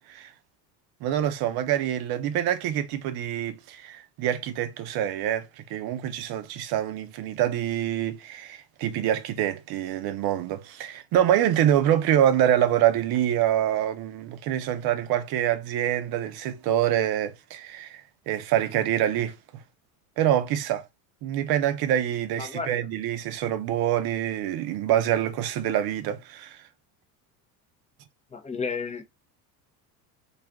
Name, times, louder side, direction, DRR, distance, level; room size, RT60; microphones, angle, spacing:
voice 1, 1.0-19.4 20.2-20.8 21.2-26.6, right 11 dB, 55° right, 0.6 m, -26 dB
voice 2, 22.4-22.7 28.3-29.0, left 5 dB, 15° left, 0.4 m, -32 dB
2.4 x 2.3 x 3.3 m
supercardioid pair, 95°, 45 cm